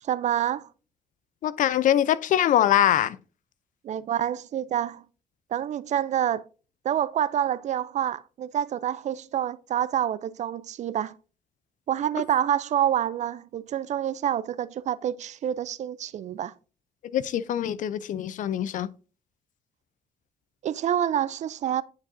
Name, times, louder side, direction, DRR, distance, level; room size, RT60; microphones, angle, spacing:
voice 1, 0.0-0.7 3.8-5.0 5.5-6.4 6.8-11.2 11.9-16.5 20.6-21.8, right 10 dB, 55° right, 0.4 m, -27 dB
voice 2, 1.4-3.2 17.1-18.9, left 11 dB, 65° left, 0.4 m, -23 dB
9.3 x 4.8 x 2.6 m
cardioid pair, 90°, 14 cm